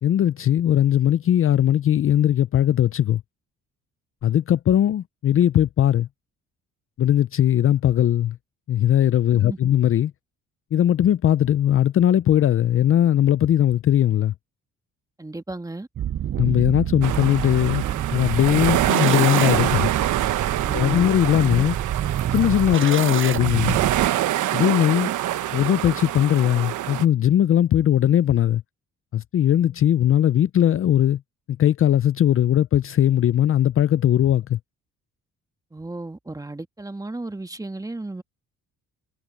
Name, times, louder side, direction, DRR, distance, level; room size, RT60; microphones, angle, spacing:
voice 1, 0.0-3.2 4.2-6.1 7.0-8.4 8.7-10.1 10.7-14.3 16.4-17.8 18.1-19.9 20.7-21.8 22.3-23.8 24.5-25.1 25.5-28.6 29.1-31.2 31.6-34.6, left 11 dB, 45° left, 0.5 m, -19 dB
voice 2, 9.3-9.7 15.2-15.9 20.6-21.2 21.4-21.7 35.7-38.2, right 2 dB, 10° right, 1.8 m, -34 dB
sound 1, 16.0-24.1, right 10 dB, 45° right, 0.5 m, -28 dB
sound 2, 17.0-27.0, right 13 dB, 80° right, 1.2 m, -25 dB
cardioid pair, 90°, 30 cm